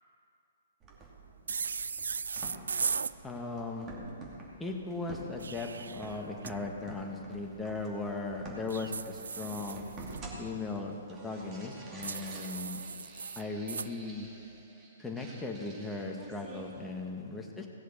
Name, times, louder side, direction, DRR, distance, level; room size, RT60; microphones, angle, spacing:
sound 1, 0.8-16.8, right 2 dB, 25° right, 2.6 m, -49 dB
sound 2, 1.5-3.1 5.2-6.5 8.7-10.2 12.0-13.9, right 5 dB, 75° right, 0.3 m, -37 dB
voice 1, 3.2-3.9 4.6-9.9 10.4-12.8 13.3-14.3 15.0-17.7, left 3 dB, 10° left, 1 dB, 1.5 m, -38 dB
17.0 x 7.4 x 7.1 m, 2.7 s
hypercardioid pair, 125°, 0 cm